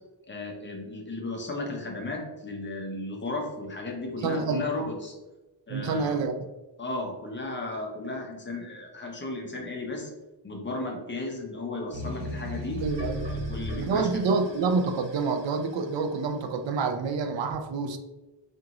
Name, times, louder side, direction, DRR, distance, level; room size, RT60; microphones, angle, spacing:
voice 1, 0.2-5.1 5.7-6.2 6.8-10.1 10.4-12.8 13.3-14.1, left 2 dB, 25° left, 0 dB, 0.7 m, -35 dB
voice 2, 4.2-4.6 5.7-6.4 12.8-13.4 13.7-18.0, right 4 dB, 80° right, 7 dB, 0.5 m, -27 dB
sound 1, 11.9-16.3, equal, 60° right, 1.3 m, -36 dB
4.8 x 2.6 x 2.9 m, 1.1 s
wide cardioid pair, 175°, 44 cm